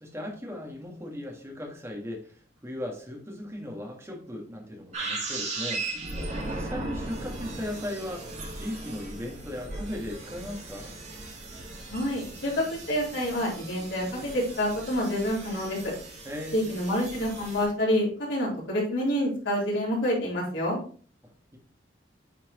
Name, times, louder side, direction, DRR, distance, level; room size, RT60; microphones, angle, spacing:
voice 1, 0.0-2.3 2.6-5.8 6.4-10.9 16.2-16.7 21.2-21.6, left 1 dB, 15° right, 0 dB, 1.7 m, -37 dB
sound 1, 4.9-17.7, right 2 dB, 40° right, 1.9 m, -38 dB
voice 2, 11.9-15.8 16.5-20.8, equal, 85° left, -5 dB, 3.7 m, -27 dB
8.8 x 4.4 x 3.0 m, 0.42 s
head